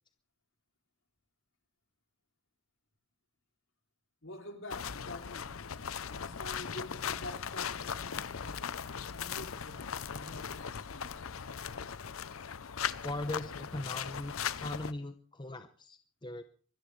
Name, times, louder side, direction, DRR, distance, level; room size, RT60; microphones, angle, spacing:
voice 1, 4.2-5.5 6.1-8.8 9.1-10.6 10.9-11.3, left 1 dB, 70° left, 3.0 m, -47 dB
sound 1, 4.7-14.9, left 7 dB, 90° left, 0.7 m, -39 dB
voice 2, 12.8-16.4, left 1 dB, 20° left, 0.8 m, -40 dB
24.0 x 13.5 x 3.3 m
head